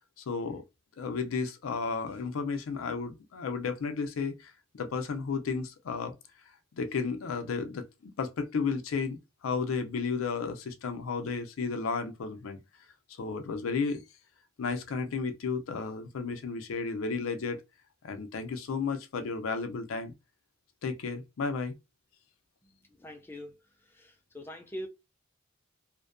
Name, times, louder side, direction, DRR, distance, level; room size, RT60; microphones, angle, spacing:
voice 1, 0.2-0.6 1.0-6.1 6.7-12.6 13.1-14.0 14.6-17.6 18.0-20.1 20.8-21.7, left 4 dB, 90° left, 0.4 m, -33 dB
voice 2, 23.0-23.6 23.9-24.9, equal, 10° left, 0.3 m, -42 dB
2.6 x 2.1 x 2.4 m
head